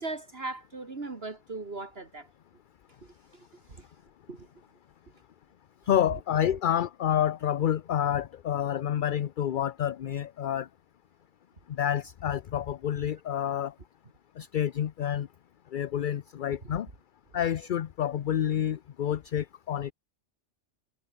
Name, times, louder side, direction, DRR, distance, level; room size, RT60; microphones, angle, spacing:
voice 1, 0.0-2.3 3.0-3.9 4.3-4.5 16.6-16.8, right 3 dB, 50° right, 2.4 m, -39 dB
voice 2, 5.9-10.7 11.7-13.7 14.4-15.3 15.7-16.9 17.3-19.9, left 10 dB, 55° left, 0.6 m, -28 dB
omnidirectional pair, 1.3 m